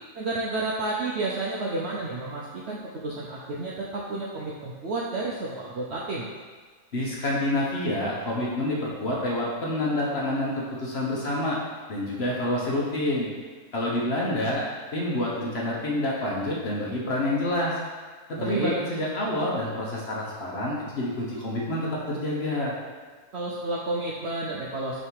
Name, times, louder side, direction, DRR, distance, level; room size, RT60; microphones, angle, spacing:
voice 1, 0.2-6.3 18.4-18.7 23.3-25.0, right 2 dB, 60° right, -4 dB, 0.7 m, -31 dB
voice 2, 6.9-11.6 11.9-13.3 13.7-14.7 14.9-17.8 18.4-22.7, left 1 dB, 45° left, -4 dB, 1.1 m, -28 dB
6.5 x 3.3 x 4.6 m, 1.5 s
omnidirectional pair, 1.7 m